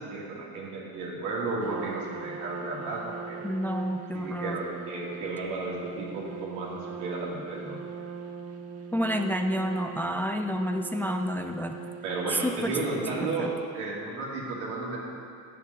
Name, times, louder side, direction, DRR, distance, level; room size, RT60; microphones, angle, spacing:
voice 1, 0.0-3.4 4.1-7.8 12.0-15.0, right 3 dB, 90° right, -4 dB, 2.6 m, -33 dB
Trumpet, 1.6-13.7, right 5 dB, 40° right, 0.7 m, -41 dB
voice 2, 3.4-4.6 8.9-11.7 12.3-12.8 13.4-13.5, equal, 5° left, 5 dB, 0.4 m, -29 dB
10.5 x 7.5 x 5.5 m, 2.4 s
cardioid pair, 110°, 39 cm